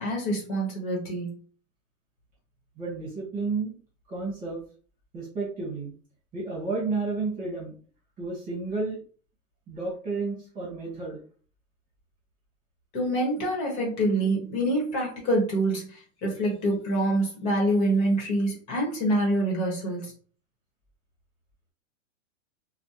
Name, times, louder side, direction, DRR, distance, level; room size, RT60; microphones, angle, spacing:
voice 1, 0.0-1.4 12.9-20.1, right 1 dB, 40° left, -1 dB, 1.5 m, -26 dB
voice 2, 2.8-3.7 4.1-4.6 5.1-5.9 6.3-7.7 8.2-9.0 9.7-11.2, right 3 dB, 20° right, -4 dB, 1.5 m, -31 dB
3.2 x 2.4 x 2.8 m, 0.42 s
supercardioid pair, 140°, 39 cm